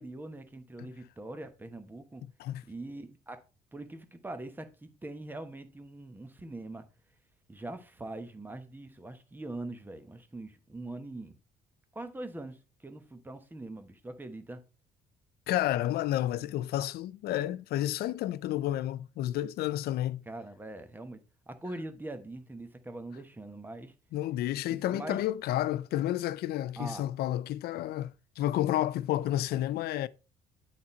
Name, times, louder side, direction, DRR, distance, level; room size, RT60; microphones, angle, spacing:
voice 1, 0.0-2.2 2.7-3.4 3.7-6.8 7.5-11.4 11.9-14.6 20.3-21.2 21.5-23.9 24.7-25.3 26.8-27.0, right 2 dB, 10° right, 1.0 m, -42 dB
voice 2, 15.5-20.3 24.1-30.1, left 13 dB, 70° left, 0.5 m, -31 dB
8.5 x 4.2 x 4.3 m
cardioid pair, 110°, 17 cm